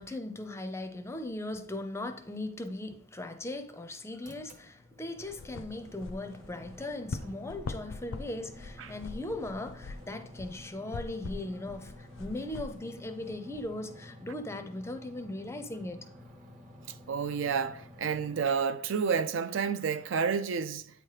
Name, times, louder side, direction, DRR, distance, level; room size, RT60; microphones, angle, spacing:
voice 1, 0.0-16.0, left 2 dB, 15° left, 0.5 m, -38 dB
sound 1, 4.2-18.4, left 1 dB, 45° right, 1.1 m, -51 dB
sound 2, 5.2-13.7, left 3 dB, 90° left, 0.4 m, -43 dB
voice 2, 17.1-20.9, right 6 dB, 70° right, 0.4 m, -30 dB
8.7 x 3.0 x 4.8 m
head